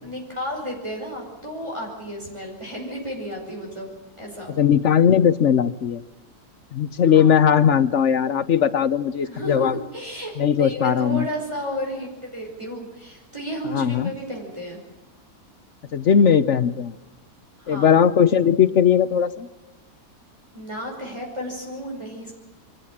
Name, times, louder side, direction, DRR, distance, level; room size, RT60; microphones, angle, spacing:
voice 1, 0.0-4.6 7.1-7.4 9.2-10.3 10.6-14.8 17.6-18.0 20.5-22.3, equal, 15° right, -2 dB, 5.4 m, -33 dB
voice 2, 4.5-6.0 6.7-9.8 10.4-11.3 13.7-14.1 15.9-16.9 17.7-19.5, left 8 dB, 55° left, 15 dB, 1.1 m, -18 dB
24.0 x 14.5 x 8.7 m, 1.1 s
omnidirectional pair, 1.7 m